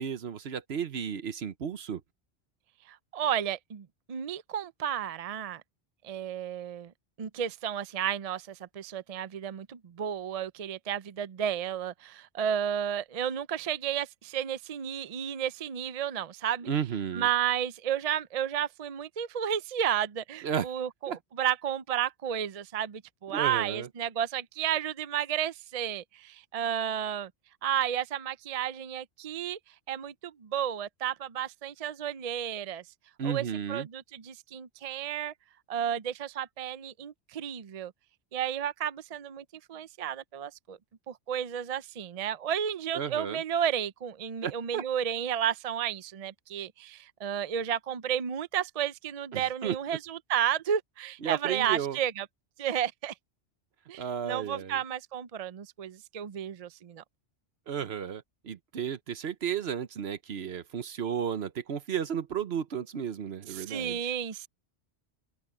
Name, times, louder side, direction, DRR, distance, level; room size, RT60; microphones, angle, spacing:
voice 1, 0.0-2.0 16.7-17.3 20.4-20.7 21.1-21.2 23.3-23.9 33.2-33.9 42.9-43.4 44.4-44.8 49.3-49.7 51.2-52.0 54.0-54.8 57.7-64.1, right 8 dB, 65° right, 1.1 m, -33 dB
voice 2, 2.9-5.6 6.0-6.9 7.2-16.7 17.1-27.3 27.6-29.6 29.9-32.8 33.2-35.3 35.7-37.9 38.3-40.8 41.1-52.3 52.6-53.1 53.9-57.0 63.5-64.5, right 9 dB, 45° right, 0.5 m, -32 dB
open air
omnidirectional pair, 1.2 m